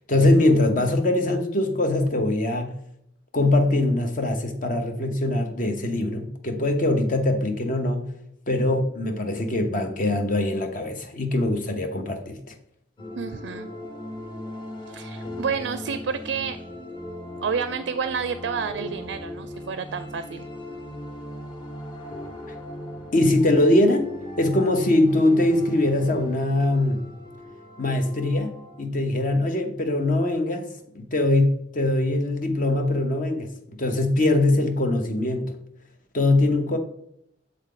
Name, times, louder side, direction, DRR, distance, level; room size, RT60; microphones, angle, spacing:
voice 1, 0.1-2.7 3.3-8.1 8.5-12.4 23.1-24.1 24.4-27.0 27.8-30.7 30.9-33.5 33.8-35.6 36.1-36.8, left 1 dB, 45° left, 0.8 m, -22 dB
sound 1, 13.0-28.8, left 1 dB, 25° left, 1.1 m, -39 dB
voice 2, 13.1-13.7 14.9-16.6 17.4-20.5, right 6 dB, 70° right, 0.4 m, -29 dB
7.9 x 3.8 x 3.8 m
head